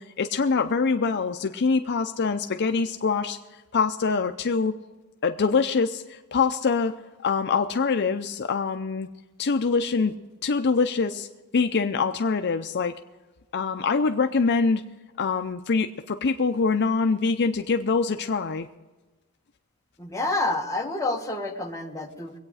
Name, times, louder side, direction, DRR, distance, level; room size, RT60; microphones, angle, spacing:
voice 1, 0.0-3.4 3.7-4.8 5.2-6.9 7.2-9.1 9.4-10.1 10.4-11.3 11.5-12.9 13.5-14.8 15.2-18.7, left 4 dB, 50° left, 7 dB, 0.5 m, -24 dB
voice 2, 20.0-22.3, left 2 dB, 15° left, 0 dB, 1.5 m, -28 dB
23.0 x 8.8 x 4.8 m, 1.2 s
head